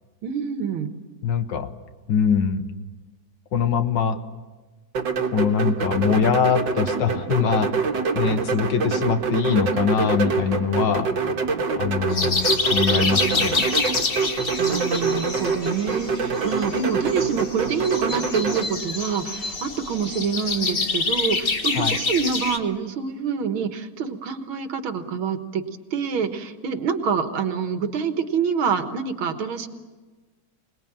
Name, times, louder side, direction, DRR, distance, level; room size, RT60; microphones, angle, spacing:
voice 1, 0.2-0.9 14.6-25.6 25.9-29.7, right 6 dB, 85° right, 8 dB, 2.3 m, -26 dB
voice 2, 1.2-1.7 2.1-2.7 3.5-4.2 5.3-7.9 8.1-11.1 11.8-13.7 21.7-22.0, left 6 dB, 65° left, 9 dB, 1.6 m, -23 dB
sound 1, 4.9-18.7, right 5 dB, 65° right, 1.9 m, -25 dB
sound 2, 12.1-22.6, left 3 dB, 35° left, 1.2 m, -27 dB
26.5 x 20.0 x 8.8 m, 1.3 s
omnidirectional pair, 2.2 m